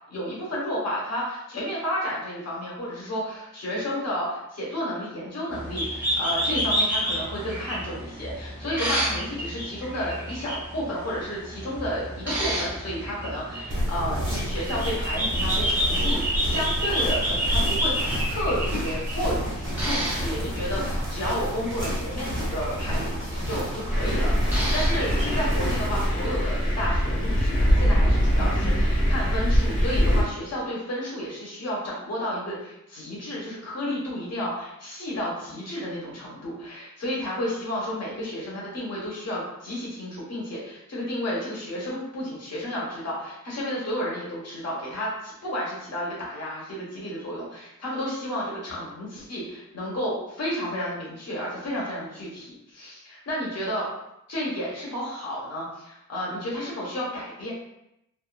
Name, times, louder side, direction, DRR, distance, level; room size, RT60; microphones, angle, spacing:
voice 1, 0.1-17.9 18.3-53.9 54.3-57.5, equal, 55° left, -5 dB, 1.0 m, -32 dB
sound 1, 5.5-25.5, equal, 5° right, 0.8 m, -30 dB
sound 2, 13.7-26.1, equal, 40° right, 0.8 m, -30 dB
Thunder, 23.9-30.2, equal, 25° left, 1.0 m, -22 dB
2.5 x 2.4 x 2.2 m, 0.83 s
wide cardioid pair, 145°, 30 cm